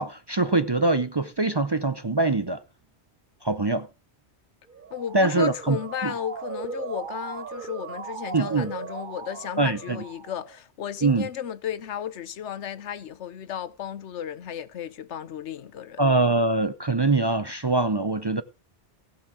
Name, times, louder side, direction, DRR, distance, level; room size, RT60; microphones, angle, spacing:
voice 1, 0.0-2.6 3.4-3.9 5.1-5.8 6.0-6.1 8.3-8.7 9.6-10.0 11.0-11.3 16.0-18.4, right 2 dB, 30° right, 0.5 m, -23 dB
Motor vehicle (road) / Siren, 4.7-10.6, right 6 dB, 50° right, 1.0 m, -38 dB
voice 2, 4.9-16.0, left 9 dB, 90° left, 1.1 m, -34 dB
15.5 x 7.0 x 6.1 m
omnidirectional pair, 1.2 m